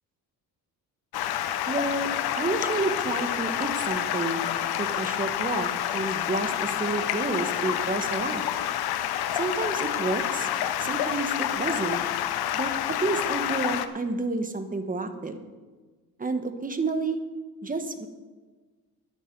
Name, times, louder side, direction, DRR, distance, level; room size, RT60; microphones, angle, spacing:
Stream, 1.1-13.9, left 11 dB, 90° left, 0.8 m, -28 dB
voice 1, 1.7-2.1 2.4-4.5 4.8-8.4 9.3-10.5 10.8-12.0 12.5-15.4 16.2-17.2 17.6-18.1, right 3 dB, 20° right, 7 dB, 1.2 m, -30 dB
12.5 x 12.0 x 4.6 m, 1.3 s
cardioid pair, 115°, 37 cm